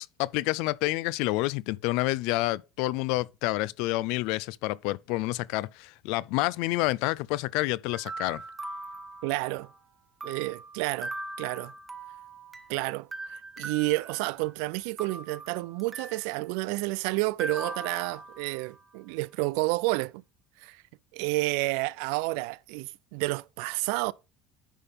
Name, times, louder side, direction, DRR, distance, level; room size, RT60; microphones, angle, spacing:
voice 1, 0.0-8.4, left 19 dB, 75° left, 0.3 m, -28 dB
sound 1, 7.9-9.8 10.2-12.7 13.1-14.6 15.0-16.3 17.4-18.8, right 2 dB, 15° right, 0.8 m, -41 dB
voice 2, 9.2-9.7 10.2-11.7 12.7-20.2 20.6-20.8 21.1-24.1, right 21 dB, 80° right, 0.3 m, -30 dB
10.0 x 3.5 x 5.2 m
cardioid pair, 145°, 0 cm